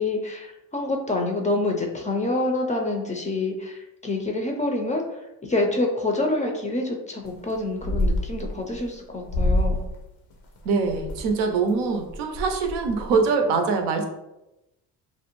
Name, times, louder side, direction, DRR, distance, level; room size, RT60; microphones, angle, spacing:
voice 1, 0.0-9.8, left 2 dB, 20° left, 1 dB, 0.4 m, -27 dB
sound 1, 7.3-7.5 7.8-8.9 9.3-9.9 10.3-11.3 11.8-11.9 12.1-13.2, left 1 dB, 90° left, 0.6 m, -26 dB
voice 2, 10.6-14.1, right 4 dB, 85° right, 5 dB, 0.5 m, -23 dB
2.5 x 2.0 x 2.9 m, 0.93 s
supercardioid pair, 70°, 42 cm